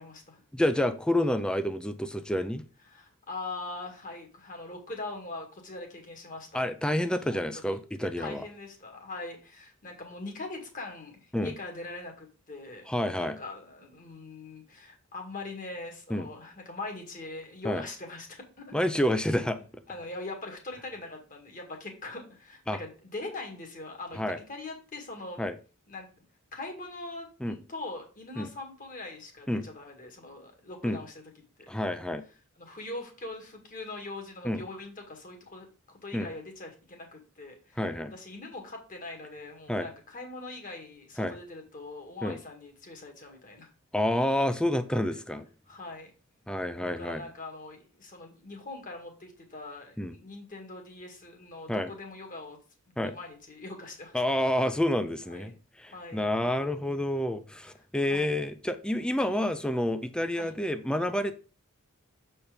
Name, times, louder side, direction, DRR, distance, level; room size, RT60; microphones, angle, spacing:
voice 1, 0.0-0.4 2.9-6.7 7.0-7.7 8.2-18.7 19.5-25.5 25.9-26.1 26.5-31.2 31.6-31.7 32.6-35.7 36.0-37.8 38.1-43.7 45.1-45.2 45.7-46.1 46.8-52.6 52.9-54.2 55.3-55.6 55.9-57.0 58.0-58.4 60.4-60.5, left 2 dB, 40° left, 1.9 m, -42 dB
voice 2, 0.5-2.6 6.5-8.4 11.3-11.5 12.9-13.4 16.1-16.3 17.6-17.8 18.7-19.6 22.7-22.8 24.2-24.4 25.4-25.5 27.4-27.6 28.4-28.5 29.5-29.7 30.8-31.0 31.7-32.2 34.4-34.6 36.1-36.3 37.8-38.1 39.7-39.9 41.2-41.4 42.2-42.4 43.9-45.5 46.5-47.2 50.0-50.1 51.7-51.9 53.0-53.1 54.1-55.5 55.8-61.4, left 1 dB, 5° left, 0.5 m, -29 dB
7.0 x 4.4 x 5.0 m
head